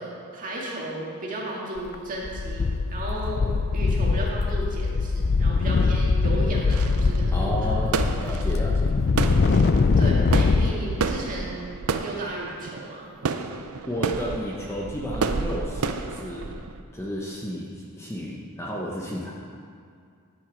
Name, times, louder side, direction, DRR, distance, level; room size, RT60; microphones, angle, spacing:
voice 1, 0.0-7.7 10.0-11.7 12.0-13.1, right 1 dB, 35° right, -4 dB, 2.0 m, -34 dB
sound 1, 1.8-2.0 2.3-10.7, left 4 dB, 45° left, 0.4 m, -22 dB
sound 2, 6.7-16.8, right 4 dB, 70° right, 0.6 m, -31 dB
voice 2, 7.3-8.9 13.9-16.6 16.9-19.3, equal, 10° left, -3 dB, 0.9 m, -32 dB
10.5 x 7.9 x 5.1 m, 2.3 s
head